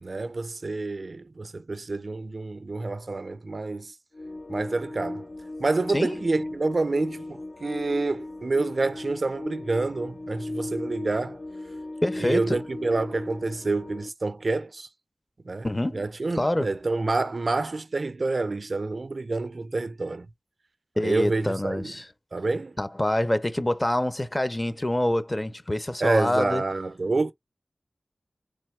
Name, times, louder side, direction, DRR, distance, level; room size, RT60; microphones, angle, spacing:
voice 1, 0.0-3.9 4.5-5.3 5.6-11.4 12.2-14.9 15.4-15.7 15.9-20.3 21.0-21.9 22.3-22.8 26.0-27.3, right 3 dB, 60° right, 0.4 m, -28 dB
sound 1, 4.1-14.1, left 2 dB, 65° left, 0.6 m, -37 dB
voice 2, 12.0-12.6 15.6-16.1 16.3-16.7 21.0-22.1 22.8-26.6, left 1 dB, 25° left, 0.6 m, -26 dB
4.0 x 3.4 x 3.1 m
wide cardioid pair, 60°, 0 cm